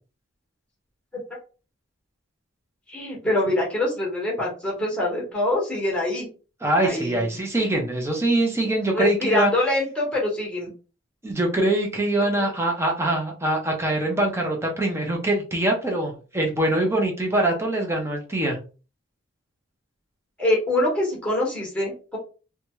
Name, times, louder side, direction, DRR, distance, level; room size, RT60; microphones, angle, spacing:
voice 1, 2.9-6.3 6.8-7.4 8.9-10.7 20.4-22.2, left 1 dB, 5° left, -3 dB, 1.1 m, -24 dB
voice 2, 6.6-9.5 11.2-18.6, right 1 dB, 15° right, 1 dB, 0.6 m, -23 dB
2.7 x 2.3 x 3.0 m, 0.35 s
head